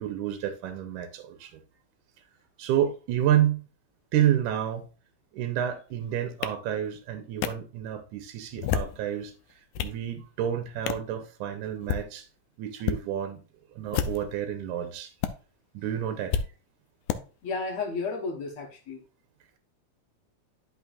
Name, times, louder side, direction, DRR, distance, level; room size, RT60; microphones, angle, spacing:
voice 1, 0.0-1.6 2.6-3.6 4.1-4.9 5.3-9.3 9.8-12.3 12.6-13.4 13.8-15.1 15.7-16.4, right 10 dB, 75° right, 2.1 m, -29 dB
sound 1, 6.4-6.5 7.4-7.5 8.5-9.0 9.5-10.0 10.9-11.1 11.7-12.0 12.8-13.0 13.9-14.4 15.2-15.3 16.3-16.5 17.1-17.2, left 9 dB, 80° left, 1.8 m, -29 dB
voice 2, 17.4-19.0, left 4 dB, 60° left, 2.1 m, -32 dB
11.0 x 5.3 x 2.4 m
omnidirectional pair, 3.9 m